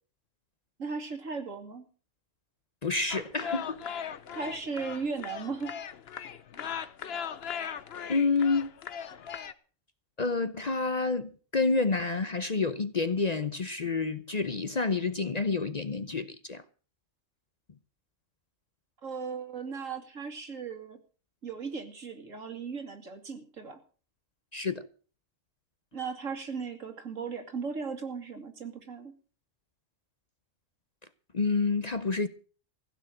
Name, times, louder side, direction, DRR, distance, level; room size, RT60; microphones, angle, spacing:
voice 1, 0.8-1.9 4.3-5.7 19.0-21.0 21.4-23.8 25.9-29.1, right 5 dB, 80° right, 2.6 m, -37 dB
voice 2, 2.8-3.8 8.1-8.7 10.2-16.6 24.5-24.9 31.3-32.3, left 4 dB, 40° left, 0.7 m, -28 dB
sound 1, 3.1-9.5, left 7 dB, 55° left, 1.0 m, -38 dB
16.0 x 6.6 x 8.9 m
omnidirectional pair, 1.3 m